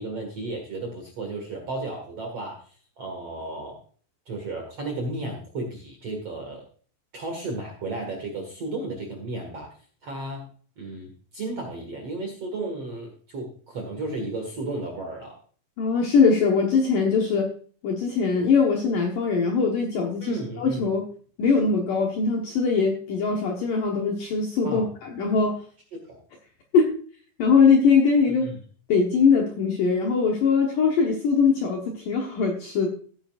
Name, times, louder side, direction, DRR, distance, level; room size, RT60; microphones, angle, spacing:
voice 1, 0.0-2.6 3.0-3.8 4.3-6.6 7.1-9.7 10.0-10.5 10.8-15.4 20.2-20.9 24.6-24.9 25.9-26.2 28.3-28.6, right 2 dB, 50° right, 2 dB, 1.8 m, -33 dB
voice 2, 15.8-17.5 17.8-21.1 21.4-25.6 26.7-26.9 27.4-28.5 28.9-32.9, left 5 dB, 65° left, 1 dB, 2.2 m, -21 dB
16.0 x 9.1 x 2.5 m, 0.43 s
omnidirectional pair, 5.4 m